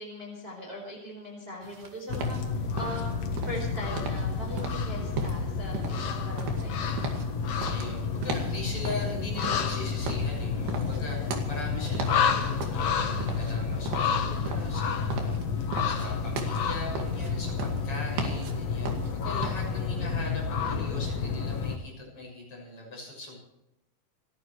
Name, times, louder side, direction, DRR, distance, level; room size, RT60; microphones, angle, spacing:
voice 1, 0.0-2.4 2.8-6.8 15.0-15.3, equal, 15° right, -1 dB, 4.6 m, -40 dB
sound 1, 1.6-19.8, right 4 dB, 85° right, 4.1 m, -37 dB
sound 2, 2.1-21.8, left 5 dB, 55° left, 2.0 m, -30 dB
voice 2, 7.7-23.4, left 2 dB, 35° left, -2 dB, 7.5 m, -40 dB
29.5 x 11.5 x 3.2 m, 0.91 s
omnidirectional pair, 4.3 m